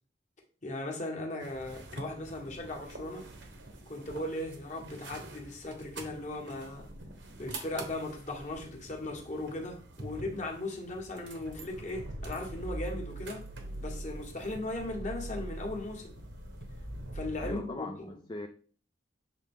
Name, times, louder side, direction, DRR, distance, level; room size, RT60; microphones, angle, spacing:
voice 1, 0.6-3.3 3.9-6.9 7.4-13.4 13.8-16.1 17.1-18.2, left 2 dB, 40° left, 1.4 m, -38 dB
sound 1, 1.4-17.5, right 2 dB, 70° right, 1.2 m, -44 dB
voice 2, 17.4-18.5, left 2 dB, 25° left, 0.4 m, -40 dB
7.5 x 3.7 x 3.6 m
head